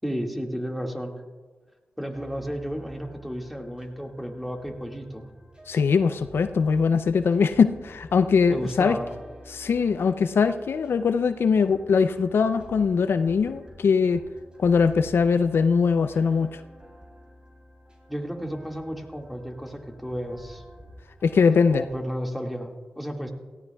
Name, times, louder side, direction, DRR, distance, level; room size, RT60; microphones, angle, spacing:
voice 1, 0.0-1.2 2.0-5.3 8.5-9.1 18.1-20.6 21.7-23.3, equal, ahead, 2 dB, 1.9 m, -33 dB
sound 1, 2.1-22.0, equal, 25° right, 3.3 m, -49 dB
voice 2, 5.7-9.0 9.5-14.2 14.6-16.6 21.2-21.8, left 5 dB, 80° left, 10 dB, 0.5 m, -21 dB
17.5 x 14.5 x 2.3 m, 1.4 s
cardioid pair, 50°, 4 cm